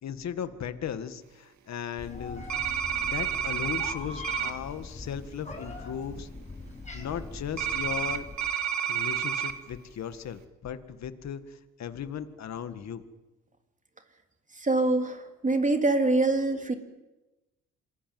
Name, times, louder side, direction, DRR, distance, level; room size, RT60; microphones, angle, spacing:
voice 1, 0.0-2.5 3.0-6.3 6.9-8.3 8.9-13.0, left 8 dB, 65° left, 10 dB, 2.0 m, -37 dB
Meow, 2.0-8.3, left 2 dB, 25° left, 7.8 m, -41 dB
sound 1, 2.5-3.9 4.2-4.5 7.6-9.5, right 9 dB, 65° right, 2.4 m, -29 dB
voice 2, 14.6-16.7, right 2 dB, 25° right, 5 dB, 3.2 m, -25 dB
27.0 x 21.5 x 7.9 m, 1.0 s
cardioid pair, 90°, 30 cm